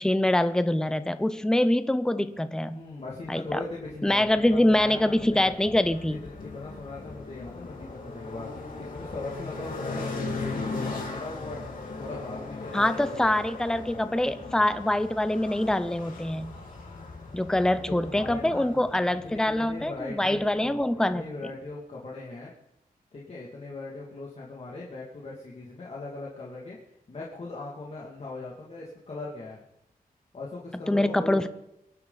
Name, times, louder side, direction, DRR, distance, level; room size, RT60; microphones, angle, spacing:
voice 1, 0.0-2.8 3.3-3.6 4.0-6.2 12.7-16.5 17.3-21.3 30.9-31.5, left 1 dB, 5° left, 11 dB, 0.6 m, -24 dB
voice 2, 2.7-5.5 6.2-11.6 12.0-13.3 17.9-18.7 19.2-22.5 23.1-29.6 30.3-31.5, left 2 dB, 45° left, -4 dB, 2.4 m, -39 dB
sound 1, 3.5-20.9, left 3 dB, 65° left, 3.7 m, -39 dB
23.5 x 11.0 x 4.1 m, 0.87 s
wide cardioid pair, 165°, 15 cm